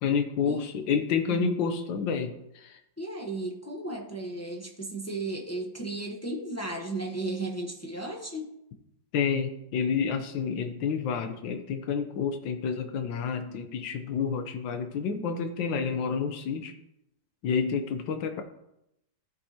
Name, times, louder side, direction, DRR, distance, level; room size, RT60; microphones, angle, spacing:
voice 1, 0.0-2.8 9.1-16.7 17.4-18.4, left 6 dB, 85° left, 7 dB, 1.5 m, -29 dB
voice 2, 3.0-8.5, right 2 dB, 15° left, 0 dB, 0.6 m, -35 dB
14.5 x 5.4 x 2.8 m, 0.83 s
omnidirectional pair, 2.0 m